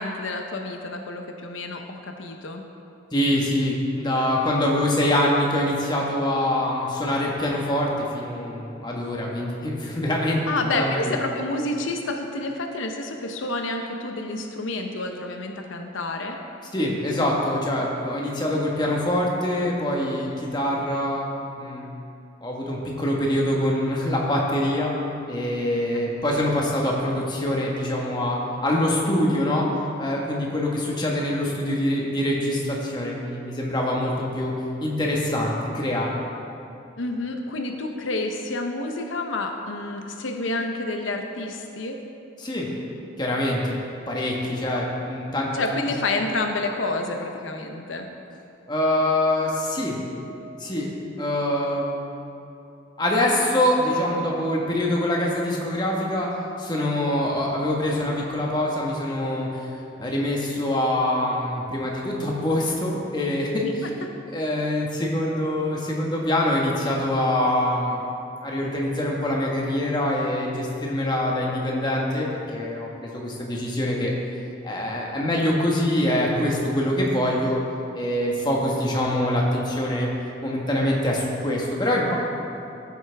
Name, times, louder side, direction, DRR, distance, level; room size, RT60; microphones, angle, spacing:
voice 1, 0.0-2.6 10.5-16.4 37.0-42.0 45.5-48.1 63.6-63.7, left 2 dB, 85° left, 3 dB, 0.8 m, -29 dB
voice 2, 3.1-10.4 10.7-11.1 16.7-21.3 21.6-21.8 22.4-24.9 25.3-29.7 30.0-34.5 34.8-36.2 42.4-42.7 43.2-43.8 44.1-45.6 48.7-50.0 50.6-50.9 51.2-52.0 53.0-56.3 56.6-63.6 64.3-68.0 68.4-74.1 74.6-77.6 77.9-80.1 80.4-82.2, left 1 dB, 25° left, -2 dB, 1.4 m, -24 dB
14.5 x 8.1 x 3.5 m, 2.7 s
head